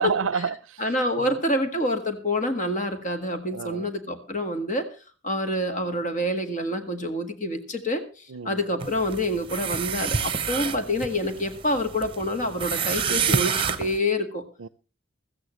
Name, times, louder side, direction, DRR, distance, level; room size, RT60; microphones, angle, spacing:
voice 1, 0.0-0.9 1.1-1.4 3.5-3.9 8.3-8.6 14.6-14.7, right 6 dB, 85° right, 0.5 m, -30 dB
voice 2, 0.8-4.9 5.2-14.4, left 1 dB, 40° left, 1.7 m, -27 dB
sound 1, 8.8-14.0, right 6 dB, 25° right, 0.9 m, -28 dB
16.0 x 14.0 x 3.1 m
head